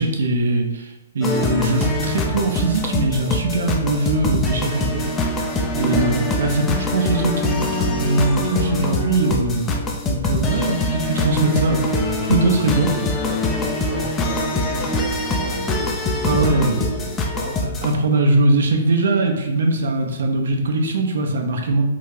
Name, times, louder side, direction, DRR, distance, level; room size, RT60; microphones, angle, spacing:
voice 1, 0.0-5.0 5.8-11.9 12.3-12.9 16.2-16.8 17.8-21.8, right 2 dB, 65° right, 3 dB, 0.5 m, -21 dB
sound 1, 1.2-17.9, left 2 dB, 20° left, 0.4 m, -23 dB
voice 2, 5.9-6.3 12.7-16.0 16.2-17.7, equal, 50° left, -5 dB, 1.4 m, -33 dB
3.8 x 2.3 x 2.8 m, 0.97 s
figure-of-eight pair, 120°, 0 cm